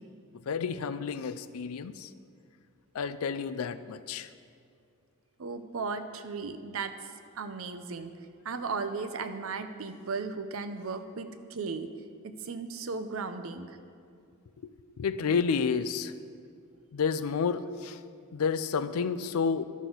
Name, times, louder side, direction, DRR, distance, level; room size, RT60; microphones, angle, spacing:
voice 1, 0.5-2.1 2.9-4.3 15.0-16.1 16.9-18.0 18.3-19.6, left 5 dB, 85° left, 12 dB, 0.4 m, -30 dB
voice 2, 5.4-6.9 7.4-8.1 8.4-11.9 12.2-13.8, right 4 dB, 70° right, 9 dB, 0.6 m, -36 dB
13.0 x 6.2 x 4.0 m, 2.3 s
head